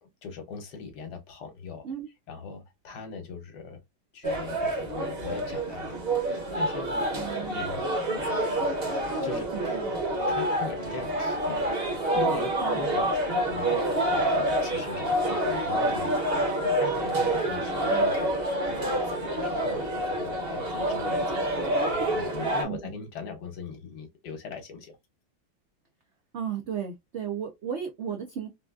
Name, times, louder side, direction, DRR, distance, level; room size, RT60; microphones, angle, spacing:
voice 1, 0.0-1.9 2.3-3.8 4.1-7.8 9.2-9.5 10.3-11.8 12.1-25.0, left 5 dB, 65° left, 1.4 m, -40 dB
sound 1, 4.2-22.6, right 1 dB, 45° right, 0.8 m, -27 dB
voice 2, 7.1-7.6 9.1-10.0 12.6-12.8 17.5-18.1 22.6-23.0 26.3-28.5, right 8 dB, 90° right, 0.6 m, -35 dB
3.8 x 2.4 x 2.2 m
omnidirectional pair, 2.0 m